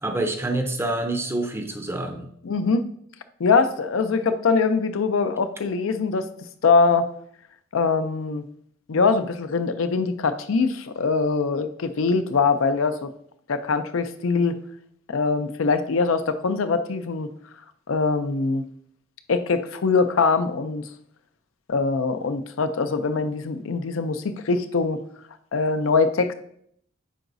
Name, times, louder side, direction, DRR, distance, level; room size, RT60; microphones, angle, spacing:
voice 1, 0.0-2.3, right 2 dB, 10° right, 5 dB, 0.6 m, -27 dB
voice 2, 2.4-2.9 3.4-6.3 6.6-7.1 7.7-8.4 8.9-13.1 13.5-14.6 15.1-17.3 17.9-18.6 19.3-20.8 21.7-25.0 25.5-26.3, left 4 dB, 80° left, 10 dB, 0.5 m, -22 dB
9.3 x 4.0 x 2.6 m, 0.67 s
head